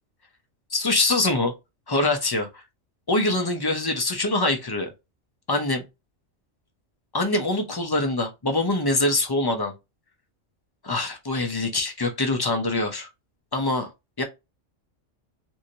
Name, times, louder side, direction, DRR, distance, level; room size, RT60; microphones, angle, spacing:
voice 1, 0.7-1.5 1.9-2.6 3.1-4.9 5.5-5.8 7.1-9.7 10.8-13.1 13.5-13.9 14.2-14.3, left 2 dB, 30° left, 0.5 m, -24 dB
3.1 x 2.6 x 2.6 m
omnidirectional pair, 1.3 m